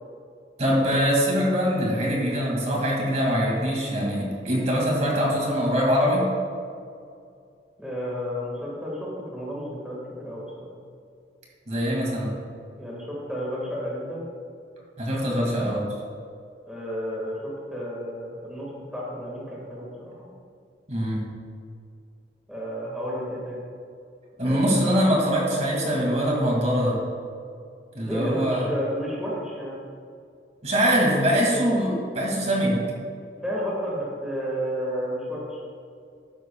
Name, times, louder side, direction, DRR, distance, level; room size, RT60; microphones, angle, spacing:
voice 1, 0.6-6.3 11.7-12.3 15.0-15.9 20.9-21.2 24.4-27.0 27.9-28.7 30.6-32.8, equal, 40° right, -2 dB, 2.2 m, -23 dB
voice 2, 7.8-10.7 12.8-14.3 16.7-20.3 22.5-23.6 24.4-24.8 28.0-29.8 33.4-35.6, equal, 5° right, -5 dB, 1.7 m, -32 dB
13.0 x 9.8 x 2.3 m, 2.4 s
head